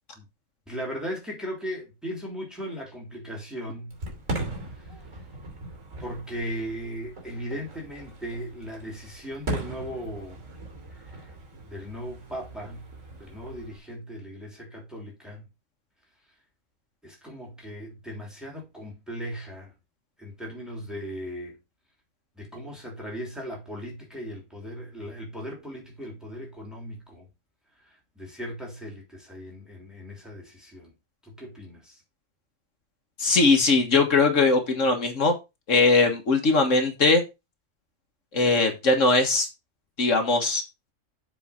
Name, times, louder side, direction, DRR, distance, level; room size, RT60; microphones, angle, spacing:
voice 1, 0.7-4.0 6.0-10.4 11.0-11.2 11.6-12.9 13.2-15.4 17.0-19.7 20.2-21.6 22.4-27.3 27.8-30.9 31.2-32.0, equal, ahead, 3.2 m, -37 dB
Fireworks, 3.9-13.8, right 2 dB, 65° right, 3.5 m, -38 dB
voice 2, 33.2-35.3 35.7-37.2 38.3-39.5 40.0-40.6, left 3 dB, 70° left, 1.8 m, -20 dB
7.5 x 5.0 x 5.7 m
omnidirectional pair, 1.4 m